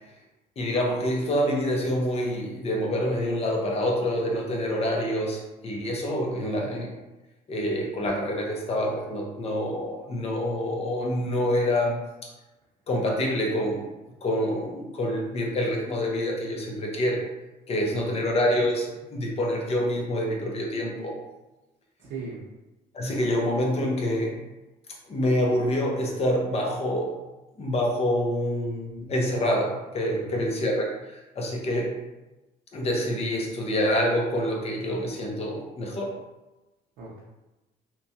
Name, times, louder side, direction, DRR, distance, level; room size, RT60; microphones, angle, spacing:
voice 1, 0.6-6.9 7.5-12.0 12.9-13.8 14.2-17.2 17.7-21.2 22.9-24.4 25.1-27.1 27.6-31.9 32.7-36.1, equal, 35° left, -1 dB, 0.7 m, -26 dB
voice 2, 6.3-6.7 17.8-18.2 22.0-22.4 30.1-30.5 37.0-37.2, right 3 dB, 85° right, -7 dB, 0.6 m, -39 dB
2.9 x 2.2 x 2.7 m, 1.0 s
cardioid pair, 110°, 17 cm